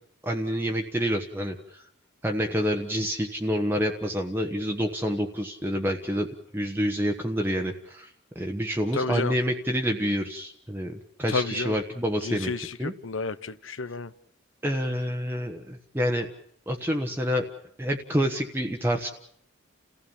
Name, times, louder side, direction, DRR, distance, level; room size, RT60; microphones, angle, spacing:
voice 1, 0.2-1.8 2.2-6.3 6.5-12.9 14.6-16.3 16.7-17.4 17.8-19.1, equal, 10° right, 2 dB, 1.2 m, -28 dB
voice 2, 8.9-9.3 11.3-11.8 12.2-14.1, left 4 dB, 65° left, 15 dB, 0.9 m, -30 dB
29.5 x 16.0 x 7.2 m, 0.70 s
head